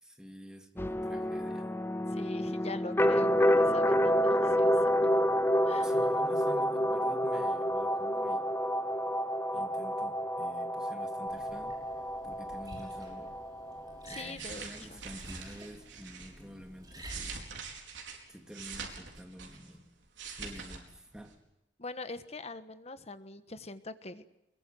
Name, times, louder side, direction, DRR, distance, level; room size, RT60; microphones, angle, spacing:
voice 1, 0.0-1.7 5.8-8.5 9.5-11.8 12.2-13.4 14.1-17.5 18.3-19.9 20.4-21.4, equal, 5° right, 5 dB, 2.4 m, -49 dB
sound 1, 0.8-14.3, equal, 15° left, 0.8 m, -29 dB
voice 2, 2.1-4.9 5.7-5.9 14.0-15.0 21.8-24.3, left 2 dB, 35° left, 11 dB, 1.4 m, -43 dB
Liquid, 11.3-17.4, right 1 dB, 20° right, 6.2 m, -49 dB
sound 2, 14.3-16.3 16.8-19.8 20.0-20.8 21.1-21.3, right 5 dB, 80° right, 4.8 m, -44 dB
23.0 x 22.5 x 7.9 m, 0.89 s
head